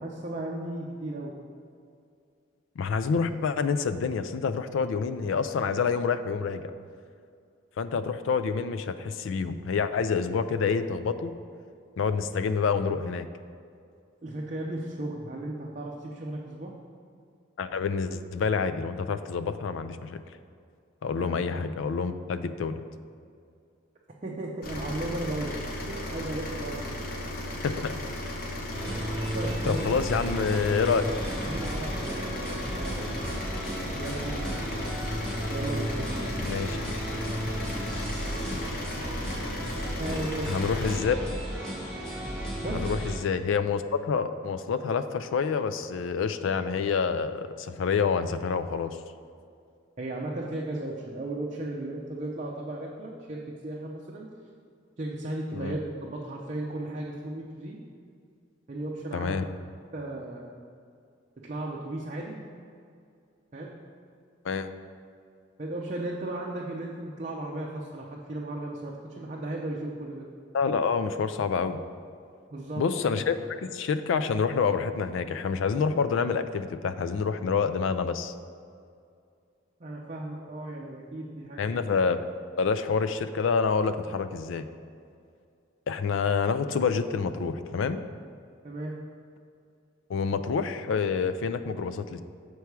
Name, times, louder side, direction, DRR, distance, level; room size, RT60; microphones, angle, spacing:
voice 1, 0.0-1.3 14.2-16.7 21.2-21.3 24.2-25.6 25.9-26.9 29.3-29.8 31.5-33.1 33.9-34.6 35.5-36.5 40.0-40.5 42.6-42.9 50.0-54.3 55.0-57.8 58.7-59.4 59.9-60.5 61.4-62.4 63.5-63.7 65.6-70.3 72.5-72.8 79.8-81.8 88.6-88.9, right 1 dB, 35° right, -3 dB, 0.6 m, -35 dB
voice 2, 2.8-6.6 7.8-11.3 12.0-13.3 17.6-20.2 21.0-22.8 27.6-27.9 29.7-31.0 36.4-36.8 38.5-38.6 40.5-41.2 42.7-49.0 55.5-55.8 59.1-59.5 64.4-64.7 70.5-71.8 72.8-73.4 73.6-78.3 81.6-82.2 82.6-84.6 85.9-88.0 90.1-92.2, left 5 dB, 80° left, 11 dB, 0.3 m, -27 dB
sound 1, 24.6-41.0, left 1 dB, 50° left, 0.8 m, -36 dB
sound 2, 28.7-43.1, equal, 5° left, 1.3 m, -34 dB
6.8 x 4.6 x 4.7 m, 2.3 s
head